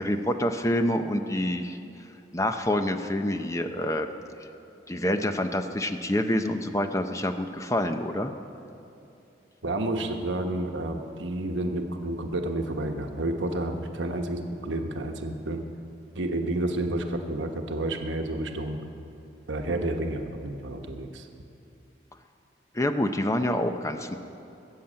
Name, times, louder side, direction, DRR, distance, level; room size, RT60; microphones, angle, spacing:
voice 1, 0.0-1.8 2.3-4.1 4.9-8.3 22.7-24.2, left 1 dB, 15° left, 7 dB, 0.7 m, -27 dB
voice 2, 9.6-15.6 16.1-18.8 19.5-21.3, right 1 dB, 85° right, 4 dB, 1.2 m, -30 dB
19.0 x 7.4 x 8.8 m, 2.7 s
head